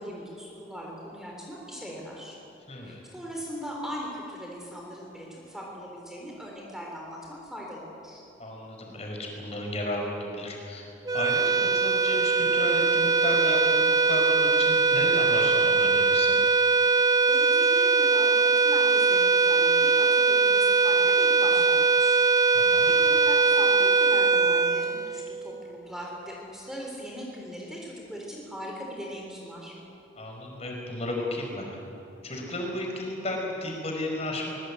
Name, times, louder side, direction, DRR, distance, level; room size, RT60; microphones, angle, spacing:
voice 1, 0.0-2.4 2.8-8.2 17.3-22.2 22.5-29.7, equal, 5° right, -2 dB, 3.7 m, -40 dB
voice 2, 2.7-3.0 8.4-10.8 11.1-16.4 22.5-22.9 30.1-31.6 32.2-34.5, left 1 dB, 35° left, 0 dB, 4.9 m, -33 dB
sound 1, 11.1-25.6, right 4 dB, 20° right, 0.5 m, -21 dB
23.0 x 22.0 x 8.4 m, 2.8 s
head